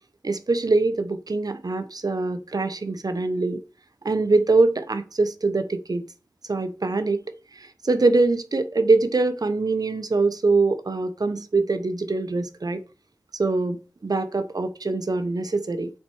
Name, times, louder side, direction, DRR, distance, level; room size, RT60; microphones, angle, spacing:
voice 1, 0.2-3.6 4.0-6.1 6.5-7.2 7.5-12.8 13.3-15.9, right 3 dB, 70° right, 0.8 m, -23 dB
7.3 x 4.5 x 4.6 m
wide cardioid pair, 45°, 7 cm